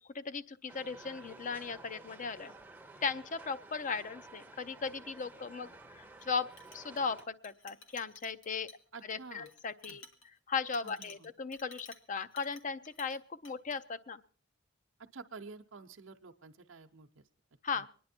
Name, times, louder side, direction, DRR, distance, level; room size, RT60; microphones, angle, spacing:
voice 1, 0.0-2.5 3.0-8.7 9.1-10.0 10.5-14.2 17.6-17.9, left 5 dB, 40° left, 14 dB, 0.6 m, -37 dB
sound 1, 0.7-7.2, right 2 dB, 10° right, 0.7 m, -53 dB
Chink clink, 6.2-13.2 13.4-13.8, left 3 dB, 85° left, 1.5 m, -55 dB
voice 2, 8.9-9.5 9.9-10.0 10.8-11.3 15.1-17.2 17.7-17.8, right 4 dB, 75° right, 4 dB, 0.7 m, -50 dB
24.5 x 10.0 x 4.3 m, 0.44 s
head